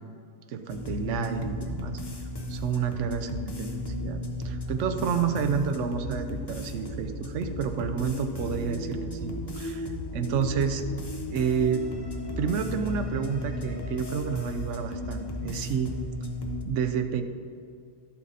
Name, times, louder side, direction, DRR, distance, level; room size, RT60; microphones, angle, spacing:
voice 1, 0.5-2.0 2.5-10.8 11.3-11.9 12.4-15.9 16.6-17.2, right 7 dB, 60° right, 7 dB, 0.9 m, -30 dB
sound 1, 0.7-16.6, left 1 dB, 25° left, 0.5 m, -35 dB
11.5 x 8.3 x 4.1 m, 2.3 s
omnidirectional pair, 1.8 m